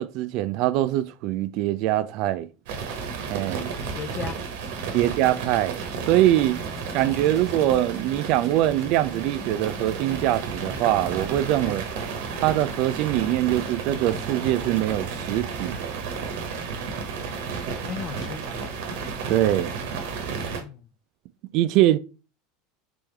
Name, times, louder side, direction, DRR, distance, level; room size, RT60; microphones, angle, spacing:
voice 1, 0.0-2.5 3.3-3.7 4.9-6.6 6.9-11.8 12.4-16.0 19.3-19.7 21.5-22.0, right 14 dB, 60° right, 0.3 m, -23 dB
sound 1, 2.7-20.6, right 5 dB, 75° right, 0.9 m, -32 dB
voice 2, 3.9-4.4 4.9-5.1 7.2-7.4 11.6-11.8 17.8-18.8 20.6-20.9, left 7 dB, 40° left, 0.4 m, -37 dB
sound 2, 6.4-11.4, equal, 5° left, 1.1 m, -44 dB
3.5 x 3.4 x 3.2 m
supercardioid pair, 115°, 0 cm